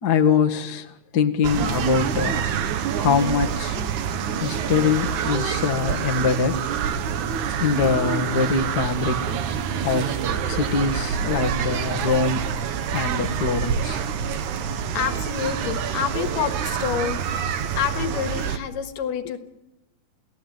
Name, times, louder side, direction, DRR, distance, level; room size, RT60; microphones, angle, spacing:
voice 1, 0.0-2.4 3.0-3.8 4.4-6.6 7.6-9.4 9.8-12.5 12.9-14.0, left 6 dB, 40° left, 3 dB, 1.4 m, -23 dB
sound 1, 1.4-18.6, right 7 dB, 65° right, 2.4 m, -26 dB
voice 2, 14.6-17.5 17.8-19.4, left 8 dB, 70° left, 9 dB, 3.1 m, -29 dB
30.0 x 17.5 x 9.1 m, 0.93 s
omnidirectional pair, 4.2 m